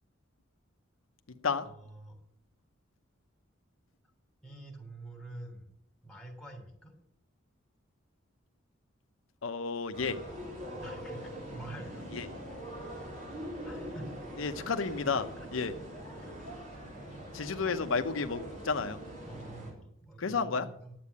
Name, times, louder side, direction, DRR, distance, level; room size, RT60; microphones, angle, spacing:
voice 1, 1.6-2.2 4.4-5.7 6.0-6.9 10.8-12.2 13.6-14.9 15.4-15.7 16.2-17.6 19.3-20.9, right 1 dB, 5° left, 1 dB, 3.1 m, -48 dB
voice 2, 9.4-10.2 12.1-12.3 14.4-15.7 17.3-19.0 20.2-20.7, left 4 dB, 80° left, 8 dB, 0.8 m, -31 dB
sound 1, 9.9-19.7, equal, 40° right, 3.9 m, -43 dB
10.0 x 8.3 x 8.4 m, 0.70 s
head